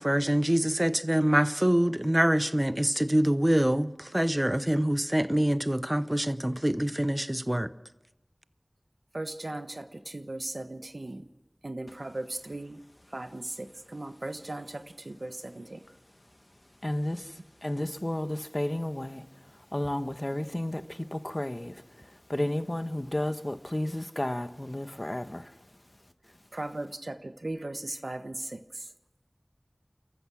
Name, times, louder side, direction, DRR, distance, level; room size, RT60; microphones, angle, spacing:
voice 1, 0.0-7.7, right 1 dB, 25° right, 0.8 m, -25 dB
voice 2, 9.1-11.3 11.6-12.8 13.1-15.8 26.5-28.9, right 2 dB, 75° right, 1.2 m, -38 dB
voice 3, 16.8-25.6, left 1 dB, 40° left, 1.1 m, -33 dB
29.5 x 14.5 x 6.3 m
wide cardioid pair, 40°, 0 cm